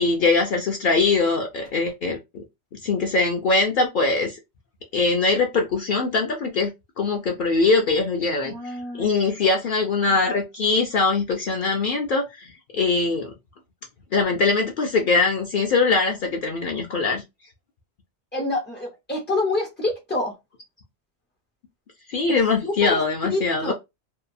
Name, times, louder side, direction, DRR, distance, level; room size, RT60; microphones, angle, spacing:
voice 1, 0.0-2.2 2.8-4.4 4.9-13.3 14.1-17.2 22.1-23.7, left 3 dB, 60° left, 0.6 m, -22 dB
voice 2, 8.4-9.2 18.3-20.3 22.3-22.4 22.6-23.7, left 2 dB, 20° left, 0.3 m, -27 dB
2.7 x 2.3 x 2.5 m
omnidirectional pair, 1.1 m